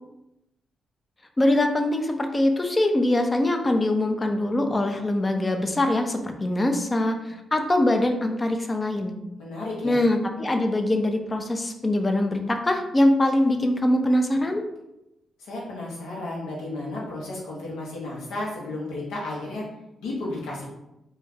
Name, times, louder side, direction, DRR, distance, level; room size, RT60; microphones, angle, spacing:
voice 1, 1.4-9.1 9.8-14.6, left 1 dB, 30° left, 5 dB, 0.4 m, -23 dB
voice 2, 9.4-9.9 15.4-19.7 20.0-20.7, left 2 dB, 80° left, -5 dB, 0.7 m, -33 dB
2.3 x 2.2 x 3.3 m, 0.90 s
hypercardioid pair, 40°, 0 cm